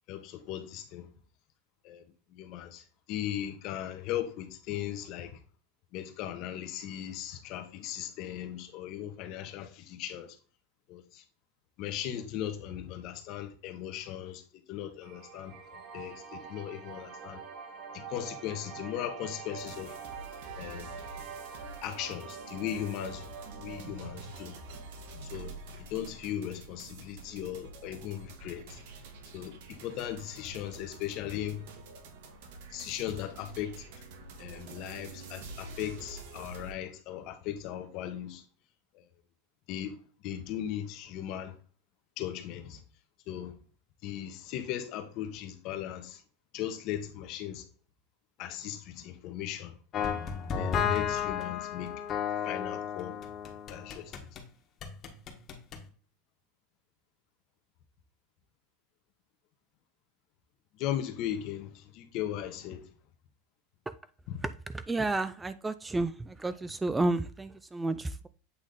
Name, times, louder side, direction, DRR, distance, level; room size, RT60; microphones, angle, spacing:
voice 1, 0.1-1.1 1.8-2.0 2.3-5.4 5.9-10.4 10.9-11.2 11.8-14.4 14.7-17.4 17.9-19.9 20.6-20.9 21.8-23.3 23.5-24.5 25.3-28.8 29.3-31.7 32.7-33.9 34.4-38.4 38.9-39.0 39.7-41.5 42.2-42.8 43.3-43.6 44.0-46.2 46.5-47.7 48.4-49.8 50.6-52.0 52.4-53.1 53.7-54.1 60.8-62.9 64.3-64.4, left 11 dB, 50° left, 1.1 m, -38 dB
sound 1, 15.0-26.1, right 6 dB, 40° right, 1.6 m, -46 dB
sound 2, 19.6-36.7, right 3 dB, 75° right, 1.7 m, -47 dB
sound 3, 49.9-54.4 54.8-55.8, left 7 dB, 35° left, 1.4 m, -33 dB
voice 2, 64.9-68.3, right 2 dB, 10° right, 0.3 m, -31 dB
8.4 x 3.5 x 3.9 m
supercardioid pair, 135°, 0 cm